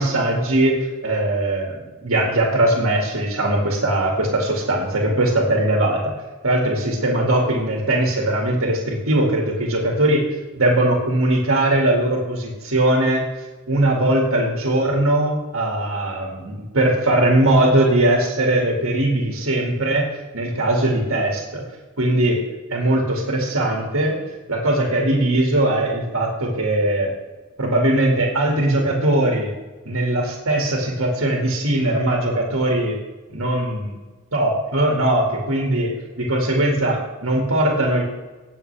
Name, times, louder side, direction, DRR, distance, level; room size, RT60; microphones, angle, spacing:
voice 1, 0.0-6.0 6.4-10.2 10.6-13.2 13.7-20.1 20.3-21.6 22.0-22.4 22.7-24.2 24.5-27.1 27.6-29.5 29.9-33.0 33.3-33.9 34.3-35.9 36.2-38.0, right 1 dB, 75° right, -1 dB, 2.3 m, -20 dB
18.0 x 7.4 x 3.4 m, 1.2 s
head